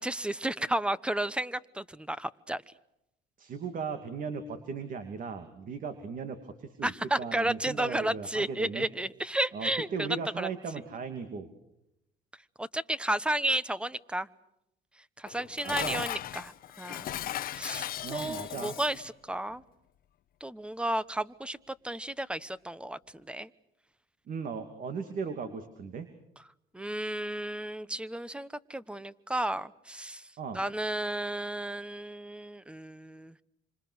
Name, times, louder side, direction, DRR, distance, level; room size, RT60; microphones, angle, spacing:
voice 1, 0.0-2.6 6.8-10.1 10.4-10.5 12.6-14.3 15.2-17.1 17.5-19.6 20.4-23.5 26.7-30.3 30.5-33.3, right 1 dB, 5° right, 17 dB, 1.0 m, -33 dB
voice 2, 3.4-6.9 7.2-8.9 9.5-11.5 15.6-16.0 18.0-18.8 24.3-26.1 30.4-30.6, right 5 dB, 55° right, 8 dB, 2.7 m, -37 dB
Dishes pots and pans, 15.3-19.1, left 12 dB, 60° left, 1.0 m, -37 dB
28.0 x 26.5 x 6.4 m, 0.82 s
cardioid pair, 110°, 17 cm